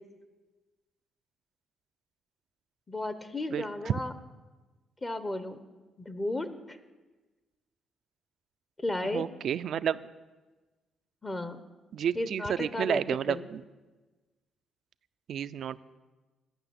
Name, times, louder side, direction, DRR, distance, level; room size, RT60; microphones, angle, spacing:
voice 1, 2.9-4.1 5.0-5.6 6.0-6.8 8.8-9.3 11.2-11.6 12.2-13.0 13.3-13.5, left 1 dB, 25° left, 10 dB, 0.8 m, -34 dB
voice 2, 3.5-4.0 9.1-10.0 11.9-13.6 15.3-15.8, right 9 dB, 65° right, 15 dB, 0.4 m, -31 dB
11.0 x 5.9 x 8.6 m, 1.2 s
cardioid pair, 90°, 0 cm